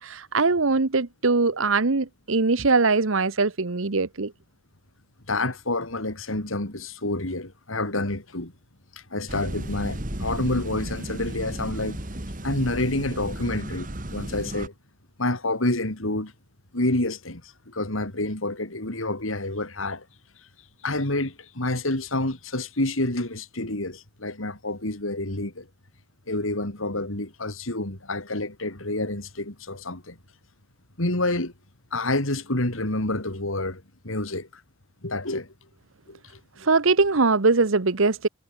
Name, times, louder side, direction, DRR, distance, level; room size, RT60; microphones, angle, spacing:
voice 1, 0.0-4.3 36.6-38.3, right 3 dB, 85° right, 1.1 m, -21 dB
voice 2, 5.3-8.5 8.9-12.0 12.4-14.7 15.2-16.3 16.7-20.1 20.8-25.7 26.3-30.2 31.0-31.5 31.9-34.6 35.0-35.5 36.1-36.7, left 2 dB, 85° left, 4.0 m, -28 dB
sound 1, 9.3-14.7, right 1 dB, 40° right, 2.7 m, -34 dB
head